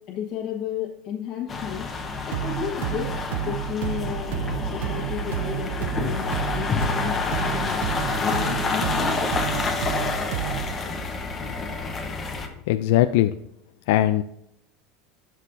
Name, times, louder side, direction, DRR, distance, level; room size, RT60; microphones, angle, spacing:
voice 1, 0.1-3.1 3.4-9.3, left 9 dB, 40° left, -3 dB, 1.3 m, -33 dB
sound 1, 1.5-12.5, left 4 dB, 20° left, 1.1 m, -28 dB
sound 2, 2.3-10.8, right 12 dB, 90° right, 0.4 m, -31 dB
voice 2, 12.7-13.3 13.9-14.2, left 14 dB, 75° left, 11 dB, 0.3 m, -19 dB
11.5 x 6.4 x 2.7 m, 0.80 s
cardioid pair, 160°, 0 cm